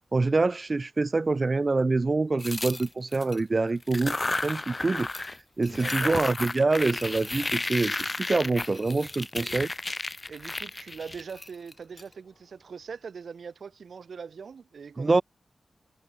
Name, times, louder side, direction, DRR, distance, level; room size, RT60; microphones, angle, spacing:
voice 1, 0.1-5.1 5.6-9.7 15.0-15.2, right 3 dB, 40° right, 0.7 m, -25 dB
sound 1, 2.4-3.4 3.8-5.4 5.6-12.0, left 2 dB, 30° left, 1.1 m, -33 dB
voice 2, 5.6-6.2 9.4-9.6 10.3-15.2, right 6 dB, 75° right, 1.4 m, -42 dB
wide cardioid pair, 80°, 0 cm